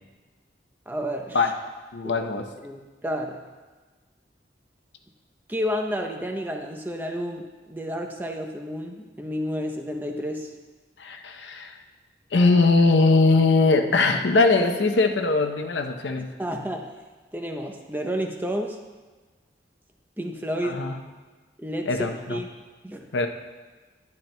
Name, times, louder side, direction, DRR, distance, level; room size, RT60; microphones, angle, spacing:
voice 1, 0.9-1.4 2.0-2.1 2.6-3.4 5.5-10.5 16.2-16.9 17.3-18.8 20.2-20.8 21.6-22.5 22.8-23.1, equal, 10° right, 3 dB, 0.6 m, -31 dB
voice 2, 1.9-2.5 11.0-11.8 12.3-16.3 20.6-21.0 21.9-22.4 23.1-23.3, left 3 dB, 85° left, 5 dB, 0.7 m, -21 dB
11.5 x 10.5 x 2.2 m, 1.3 s
head